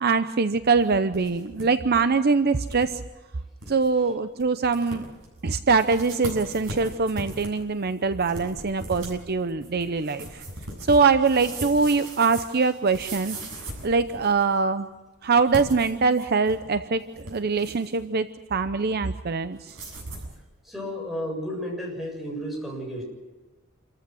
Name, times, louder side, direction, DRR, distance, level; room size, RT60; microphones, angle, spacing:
voice 1, 0.0-3.0 3.7-5.1 5.4-10.4 10.9-13.4 13.8-14.9 15.2-19.8, right 4 dB, 50° right, 11 dB, 0.7 m, -23 dB
sound 1, 0.8-1.7 2.0-2.1 2.7-2.9 3.3-3.4 3.6-3.9 4.4-4.5 4.7-5.2 5.7-14.5 15.4-16.7 17.0-18.0 19.7-20.3, right 1 dB, 65° right, 7.7 m, -39 dB
voice 2, 20.6-23.0, equal, ahead, -1 dB, 7.5 m, -32 dB
28.0 x 14.5 x 7.8 m, 1.2 s
head